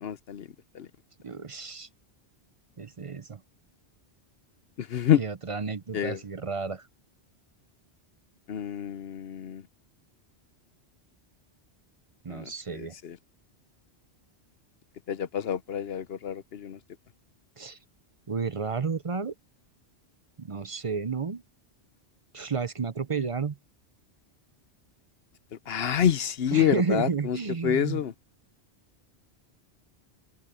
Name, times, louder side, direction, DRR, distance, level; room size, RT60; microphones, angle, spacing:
voice 1, 0.0-0.5 0.7-0.9 4.8-5.2 5.9-6.2 8.5-9.6 12.3-13.2 15.1-16.8 25.7-27.4 27.6-28.1, left 9 dB, 65° left, 0.9 m, -27 dB
voice 2, 1.2-1.9 2.8-3.4 5.2-6.9 12.2-13.0 17.6-17.8 18.3-19.3 20.4-21.4 22.3-23.6 26.5-28.0, right 5 dB, 35° right, 0.6 m, -31 dB
omnidirectional pair, 1.1 m